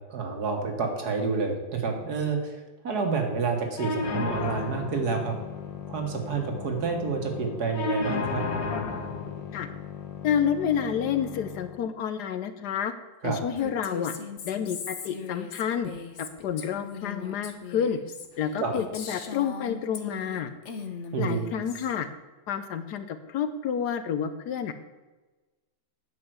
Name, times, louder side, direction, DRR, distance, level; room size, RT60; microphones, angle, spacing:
voice 1, 0.1-5.4 5.9-8.4 13.2-13.4 18.6-18.7 21.1-21.4, right 4 dB, 60° right, 3 dB, 2.0 m, -29 dB
sound 1, 3.8-11.8, left 4 dB, 85° left, 2.0 m, -34 dB
voice 2, 10.2-12.9 13.2-14.1 14.4-15.9 16.2-18.0 18.4-20.5 21.2-22.1 22.5-24.7, left 8 dB, 70° left, 10 dB, 1.2 m, -29 dB
Female speech woman speaking, 13.6-20.4 20.7-21.9, left 6 dB, 50° left, 1.1 m, -39 dB
9.0 x 5.5 x 7.9 m, 1.2 s
omnidirectional pair, 1.9 m